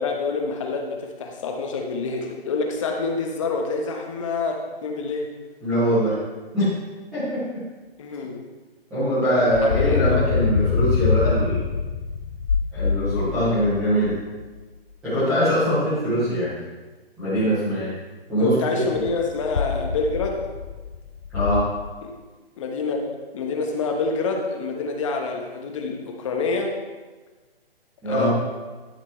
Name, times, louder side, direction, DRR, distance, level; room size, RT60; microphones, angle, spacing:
voice 1, 0.0-5.3 8.0-8.4 9.4-10.2 18.4-20.4 22.0-22.1 22.6-26.7 28.0-28.3, left 4 dB, 30° left, 2 dB, 1.1 m, -27 dB
voice 2, 5.6-6.1 6.5-6.7 7.1-7.4 8.9-11.6 12.7-14.2 15.0-16.6 17.2-17.9 18.3-18.5 18.9-19.0 21.3-21.6 28.0-28.3, equal, ahead, -20 dB, 0.4 m, -22 dB
sound 1, 9.5-14.6 19.0-21.6, left 5 dB, 80° left, 0.8 m, -25 dB
12.0 x 5.1 x 4.3 m, 1.3 s
hypercardioid pair, 150°, 30 cm